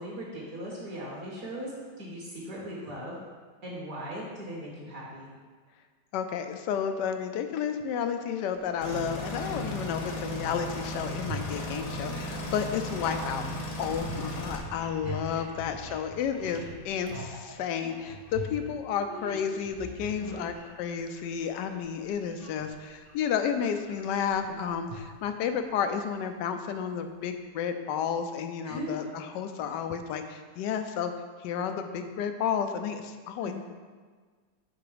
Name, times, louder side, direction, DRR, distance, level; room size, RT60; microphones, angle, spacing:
voice 1, 0.0-3.2 3.6-5.3 9.4-9.5 13.4-13.5 15.0-15.2 20.2-20.5 24.4-24.6 28.6-29.1 33.4-33.5, equal, 55° right, -5 dB, 1.7 m, -39 dB
voice 2, 6.1-13.5 13.8-31.1 31.4-33.5, left 7 dB, 85° left, 7 dB, 1.2 m, -31 dB
sound 1, 8.6-9.0 10.5-10.6 10.9-21.3 21.7-23.1 23.5-25.5, right 2 dB, 40° right, 0.8 m, -43 dB
sound 2, 8.8-14.6, left 1 dB, 70° left, 1.5 m, -35 dB
5.9 x 4.0 x 5.0 m, 1.5 s
omnidirectional pair, 1.8 m